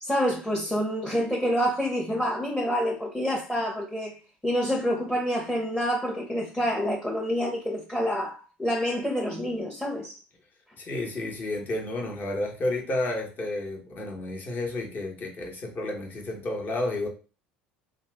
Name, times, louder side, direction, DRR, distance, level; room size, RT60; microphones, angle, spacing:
voice 1, 0.0-4.2 4.4-10.2, equal, 5° left, 0.8 m, -27 dB
voice 2, 10.8-17.1, left 2 dB, 35° left, 1.1 m, -31 dB
2.7 x 2.5 x 3.4 m
hypercardioid pair, 65°, 5 cm